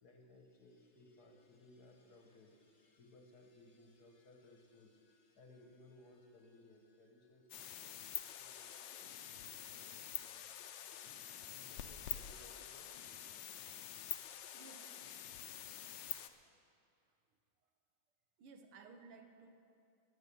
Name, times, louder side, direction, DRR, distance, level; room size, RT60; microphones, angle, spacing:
voice 1, 0.0-11.0 11.5-13.2, left 2 dB, 55° left, 3 dB, 1.5 m, -63 dB
sound 1, 7.5-16.3, left 10 dB, 70° left, 1.2 m, -47 dB
voice 2, 14.5-15.0 18.4-19.6, right 4 dB, 85° right, 6 dB, 1.9 m, -57 dB
19.5 x 7.4 x 6.9 m, 2.5 s
omnidirectional pair, 2.4 m